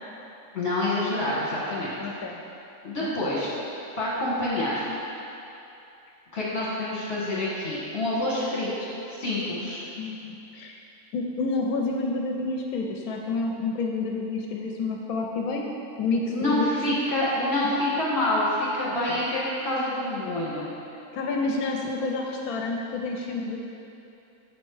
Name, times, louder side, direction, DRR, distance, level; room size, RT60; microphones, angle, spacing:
voice 1, 0.5-1.9 2.8-3.5 4.0-4.9 6.3-8.7 9.2-9.8 16.3-20.7, left 1 dB, 45° left, -7 dB, 1.8 m, -27 dB
voice 2, 2.0-2.4 3.0-3.1 9.6-10.8 11.1-15.7 16.0-16.7 17.6-17.8 21.1-23.6, left 3 dB, 85° left, 1 dB, 1.1 m, -29 dB
7.4 x 4.2 x 4.6 m, 2.8 s
omnidirectional pair, 1.5 m